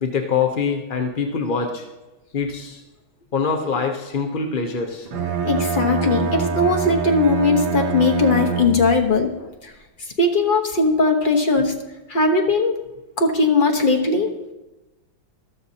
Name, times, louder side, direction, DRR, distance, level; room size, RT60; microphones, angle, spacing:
voice 1, 0.0-1.9 2.3-2.8 3.3-5.1, left 5 dB, 55° left, 2 dB, 0.5 m, -24 dB
Bowed string instrument, 5.1-9.1, right 5 dB, 80° right, 2.1 m, -25 dB
voice 2, 5.4-9.3 10.2-11.7 12.1-12.8 13.2-14.3, left 3 dB, 30° left, 2 dB, 1.0 m, -19 dB
13.5 x 13.5 x 2.8 m, 1.0 s
omnidirectional pair, 2.1 m